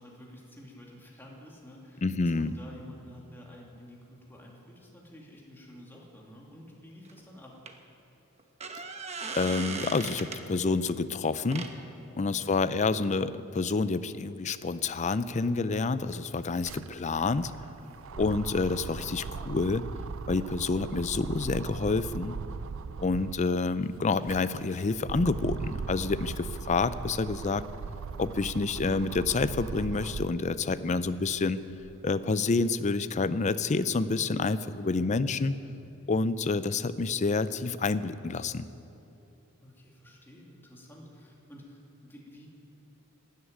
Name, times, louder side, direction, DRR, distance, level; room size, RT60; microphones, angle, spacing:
voice 1, 0.0-7.6 12.0-12.5 17.8-18.1 30.5-30.9 34.6-35.1 39.6-42.5, equal, 10° left, -3 dB, 2.5 m, -50 dB
voice 2, 2.0-2.5 9.3-11.7 12.2-17.5 18.2-19.8 20.3-22.4 23.0-27.6 28.2-31.6 32.0-35.6 36.1-38.7, left 3 dB, 35° left, 14 dB, 0.5 m, -28 dB
sound 1, 7.0-7.2 7.7-7.8 8.4-10.4 11.4-11.7 15.0-15.1 15.3-15.4, right 4 dB, 30° right, 1.0 m, -37 dB
sound 2, 15.7-23.5 24.0-30.5 31.0-32.1, right 5 dB, 65° right, 0.4 m, -39 dB
13.0 x 11.0 x 9.4 m, 2.9 s
head